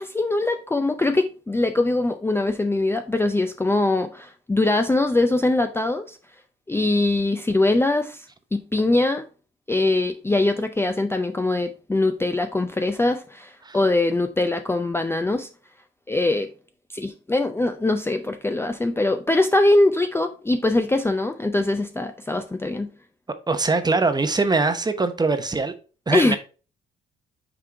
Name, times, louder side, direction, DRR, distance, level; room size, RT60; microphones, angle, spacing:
voice 1, 0.0-6.2 6.7-9.2 9.7-15.5 16.1-16.5 16.9-22.9 26.1-26.4, left 2 dB, 10° left, 0.5 m, -22 dB
voice 2, 23.5-25.7 26.1-26.4, right 3 dB, 20° right, 0.8 m, -22 dB
5.9 x 3.6 x 4.4 m
cardioid pair, 90°, 20 cm